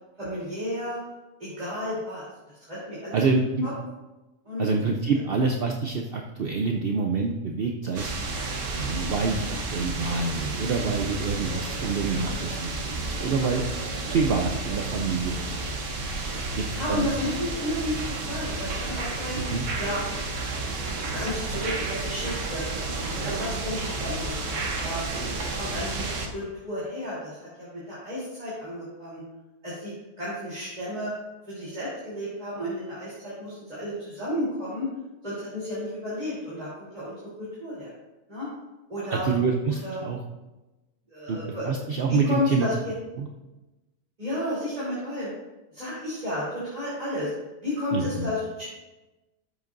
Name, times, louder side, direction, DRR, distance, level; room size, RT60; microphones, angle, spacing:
voice 1, 0.2-1.0 1.4-2.2 2.6-3.2 3.6-3.7 4.5-4.7 5.1-5.2 16.5-19.4 19.8-20.0 21.1-22.6 23.0-25.0 25.5-29.2 29.6-31.1 31.5-34.9 35.2-37.9 38.3-38.5 38.9-39.3 39.7-40.0 41.1-41.7 42.1-42.9 44.2-45.3 45.7-47.3 47.6-48.7, left 1 dB, 35° right, -10 dB, 3.5 m, -32 dB
voice 2, 3.1-3.7 4.6-8.1 8.7-13.6 14.1-15.7 16.6-17.1 19.4-19.6 39.1-40.2 41.3-41.4 41.7-42.7 43.2-43.3 47.9-48.3, right 4 dB, 55° right, 2 dB, 0.9 m, -27 dB
sound 1, 8.0-26.3, right 3 dB, 85° right, 1.4 m, -31 dB
12.0 x 8.2 x 2.6 m, 1.1 s
omnidirectional pair, 1.3 m